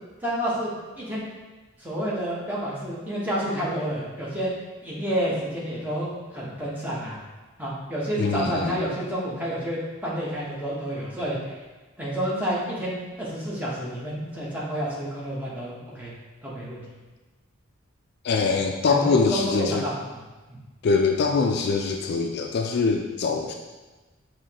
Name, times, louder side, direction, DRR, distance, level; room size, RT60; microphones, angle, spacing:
voice 1, 0.2-0.7 1.0-1.3 1.8-4.5 4.8-7.2 7.6-11.5 12.0-16.1 16.4-16.8 18.9-20.2 20.5-20.6, equal, 10° right, -7 dB, 1.0 m, -29 dB
voice 2, 8.2-8.8 18.2-19.9 20.8-23.5, left 4 dB, 50° left, 3 dB, 0.3 m, -23 dB
5.6 x 3.0 x 2.9 m, 1.2 s
head